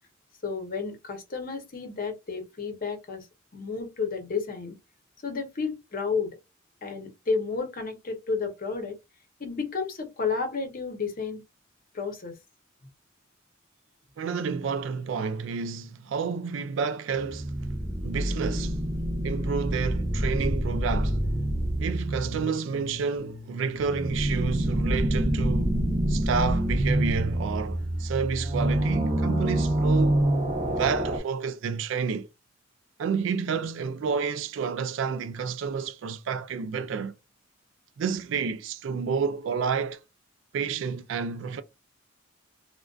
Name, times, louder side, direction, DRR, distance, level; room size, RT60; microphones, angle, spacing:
voice 1, 0.4-3.3 3.5-4.7 5.2-6.4 6.8-9.0 9.4-11.4 11.9-12.3, left 5 dB, 45° left, 0.7 m, -31 dB
voice 2, 14.2-17.5 18.0-18.8 19.2-21.2 21.8-25.8 26.1-30.3 30.7-32.3 33.0-37.1 38.0-40.0 40.5-41.6, right 5 dB, 70° right, 0.3 m, -30 dB
sound 1, 17.2-31.2, right 1 dB, 40° right, 0.7 m, -27 dB
2.4 x 2.2 x 2.3 m
head